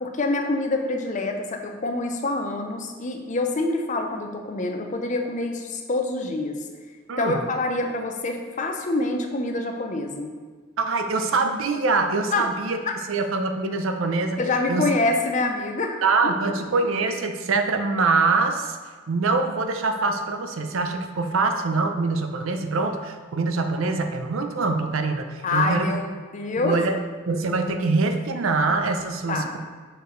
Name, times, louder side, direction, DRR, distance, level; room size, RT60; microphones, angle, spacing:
voice 1, 0.0-6.6 7.2-10.3 12.3-12.5 12.9-13.0 14.4-16.3 25.4-26.8 29.3-29.6, left 2 dB, 35° left, 4 dB, 0.5 m, -26 dB
voice 2, 7.1-7.4 10.8-12.8 13.1-14.4 14.7-14.9 16.0-18.8 19.1-25.9 26.6-27.0 27.3-29.6, right 3 dB, 75° right, 6 dB, 0.5 m, -24 dB
6.6 x 4.7 x 3.1 m, 1.5 s
head